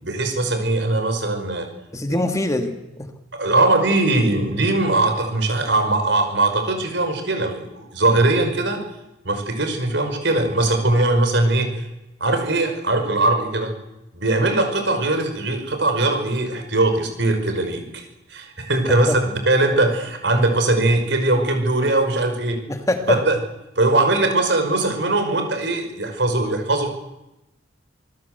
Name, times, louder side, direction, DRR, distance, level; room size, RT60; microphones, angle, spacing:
voice 1, 0.0-1.7 2.1-2.2 3.4-8.8 9.2-11.8 12.2-13.7 14.1-18.0 18.3-19.2 19.5-22.6 23.1-23.4 23.8-26.9, right 2 dB, 65° right, 6 dB, 5.5 m, -20 dB
voice 2, 1.9-3.1 19.1-19.2 22.7-23.2, left 1 dB, 15° left, 6 dB, 1.9 m, -23 dB
26.5 x 20.0 x 8.1 m, 0.94 s
head